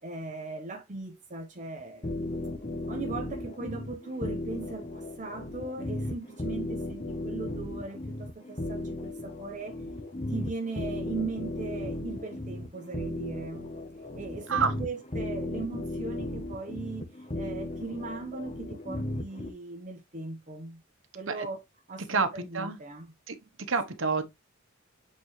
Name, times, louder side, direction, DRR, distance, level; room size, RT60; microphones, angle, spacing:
voice 1, 0.0-2.1 2.9-9.8 10.3-13.8 14.2-20.8 21.1-21.6 21.9-23.1, right 3 dB, 40° right, 1.0 m, -38 dB
sound 1, 2.0-19.5, left 1 dB, 35° left, 1.2 m, -36 dB
voice 2, 22.1-22.8 23.3-23.4 23.7-24.2, right 5 dB, 70° right, 1.0 m, -28 dB
7.7 x 4.1 x 3.1 m
head